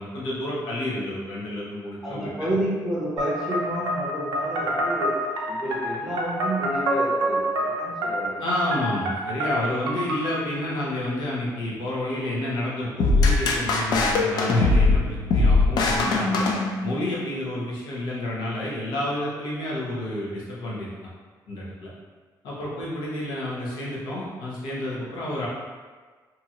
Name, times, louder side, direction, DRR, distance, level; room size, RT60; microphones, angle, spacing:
voice 1, 0.0-2.3 8.4-16.4 16.8-20.9 21.5-21.9 22.4-25.5, left 1 dB, 85° left, -6 dB, 0.9 m, -30 dB
voice 2, 2.0-5.1 5.5-8.4, right 1 dB, 5° right, -8 dB, 0.6 m, -30 dB
sound 1, 3.2-10.4, right 1 dB, 90° right, 0.5 m, -27 dB
sound 2, 13.0-17.2, left 3 dB, 65° left, 0.4 m, -21 dB
2.8 x 2.4 x 2.8 m, 1.4 s
cardioid pair, 165°, 8 cm